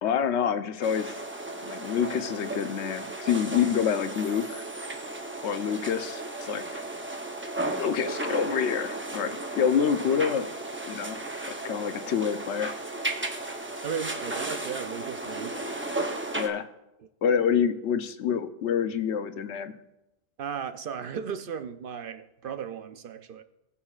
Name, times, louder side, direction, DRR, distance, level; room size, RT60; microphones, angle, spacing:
voice 1, 0.0-1.2 1.6-4.6 5.4-6.8 7.8-10.5 10.9-11.2 11.6-12.7 16.4-16.7 17.2-19.8, left 7 dB, 85° left, 10 dB, 1.0 m, -27 dB
sound 1, 0.8-16.5, right 2 dB, 15° right, 0.6 m, -35 dB
voice 2, 13.8-15.6 17.0-17.1 20.4-23.4, right 7 dB, 60° right, 9 dB, 0.7 m, -36 dB
19.5 x 7.2 x 2.4 m, 0.92 s
omnidirectional pair, 1.1 m